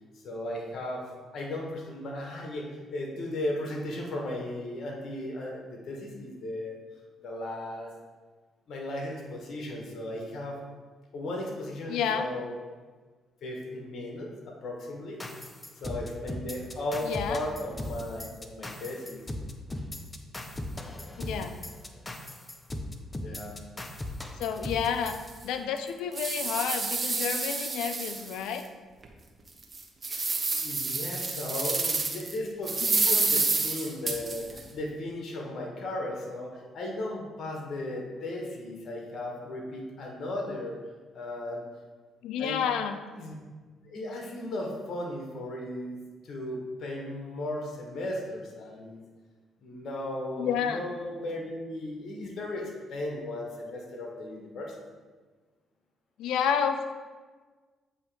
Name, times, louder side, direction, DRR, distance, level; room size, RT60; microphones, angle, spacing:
voice 1, 0.1-6.8 7.2-7.9 8.7-10.6 11.1-12.5 13.4-15.2 15.7-19.2 23.2-23.6 30.1-40.8 41.1-41.6 42.4-42.6 43.2-43.3 43.8-46.0 46.2-49.0 49.6-54.8, left 1 dB, 60° left, 0 dB, 1.3 m, -36 dB
voice 2, 11.9-12.3 17.0-17.4 21.2-21.5 24.4-25.2 25.4-28.6 32.8-33.2 42.2-43.0 50.4-50.8 56.2-56.9, left 7 dB, 85° left, 8 dB, 0.5 m, -30 dB
sound 1, 15.2-25.3, left 1 dB, 20° left, 0.6 m, -38 dB
sound 2, 24.5-24.6 25.1-25.2 25.8-28.6 29.0-29.1 29.6-32.3 32.7-34.6, right 3 dB, 30° right, 1.0 m, -29 dB
8.2 x 3.0 x 4.8 m, 1.4 s
supercardioid pair, 70°, 0 cm